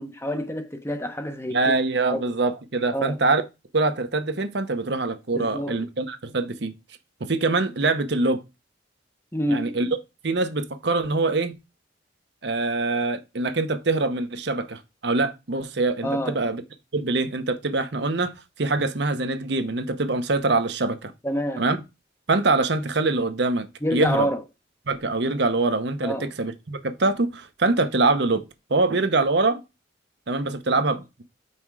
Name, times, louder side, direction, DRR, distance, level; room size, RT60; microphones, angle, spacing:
voice 1, 0.0-1.7 2.1-2.2 2.9-3.2 5.3-5.8 9.3-9.8 16.0-16.4 21.2-21.7 23.8-24.4 26.0-26.3, equal, 15° left, 0.7 m, -27 dB
voice 2, 1.5-3.4 3.7-6.7 7.2-8.4 9.5-9.9 10.2-11.6 12.4-16.6 16.9-18.3 18.6-21.1 21.6-21.8 22.3-24.3 24.9-28.4 28.7-29.6 30.3-31.2, right 3 dB, 60° right, 0.8 m, -24 dB
5.7 x 4.3 x 4.7 m
head